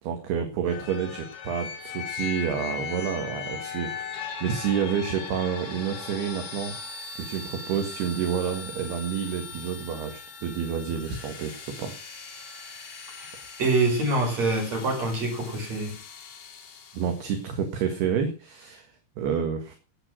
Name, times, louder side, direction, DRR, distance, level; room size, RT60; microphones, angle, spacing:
voice 1, 0.0-6.8 7.2-11.9 16.9-19.8, right 7 dB, 65° right, 5 dB, 3.6 m, -29 dB
sound 1, 0.7-17.4, left 6 dB, 60° left, 4.5 m, -39 dB
voice 2, 13.6-15.9, right 2 dB, 35° right, 1 dB, 6.5 m, -25 dB
17.0 x 7.4 x 6.3 m, 0.35 s
omnidirectional pair, 5.2 m